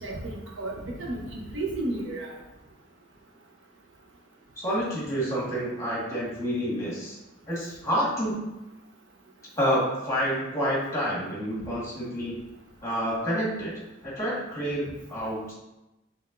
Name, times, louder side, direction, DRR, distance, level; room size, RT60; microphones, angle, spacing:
voice 1, 0.0-2.4, right 2 dB, 80° right, -2 dB, 0.9 m, -33 dB
voice 2, 4.6-7.2 7.5-8.5 9.6-12.3 12.8-13.7 14.0-15.5, equal, 15° left, -6 dB, 1.6 m, -28 dB
5.5 x 3.5 x 2.6 m, 0.97 s
head